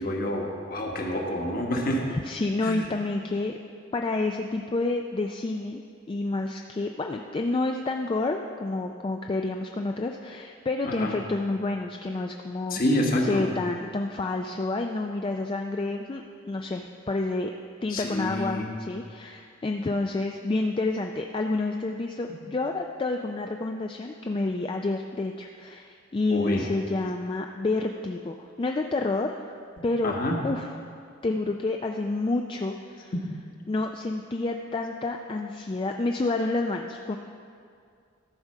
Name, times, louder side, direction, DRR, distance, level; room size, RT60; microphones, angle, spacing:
voice 1, 0.0-2.0 2.6-2.8 10.8-11.1 12.7-13.4 17.9-18.7 26.3-26.6 30.0-30.5, left 1 dB, 45° left, 0 dB, 1.3 m, -27 dB
voice 2, 2.1-3.6 3.9-5.8 6.1-17.5 17.8-29.6 29.8-30.1 30.4-30.7 31.2-33.1 33.7-37.2, left 2 dB, 25° left, 3 dB, 0.3 m, -29 dB
13.0 x 4.8 x 6.5 m, 2.3 s
head